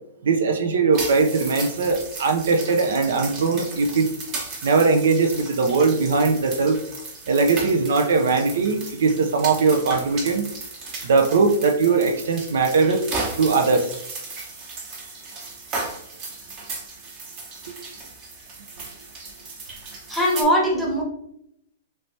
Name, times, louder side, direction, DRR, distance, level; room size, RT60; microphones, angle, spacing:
voice 1, 0.2-4.1 4.6-6.8 7.3-10.4 11.0-13.0 13.4-13.9, right 4 dB, 80° right, 6 dB, 0.4 m, -20 dB
sound 1, 0.9-20.4, right 3 dB, 30° right, 0.9 m, -35 dB
voice 2, 20.1-21.0, equal, ahead, -3 dB, 0.9 m, -20 dB
3.2 x 3.2 x 2.7 m, 0.74 s
hypercardioid pair, 150°, 0 cm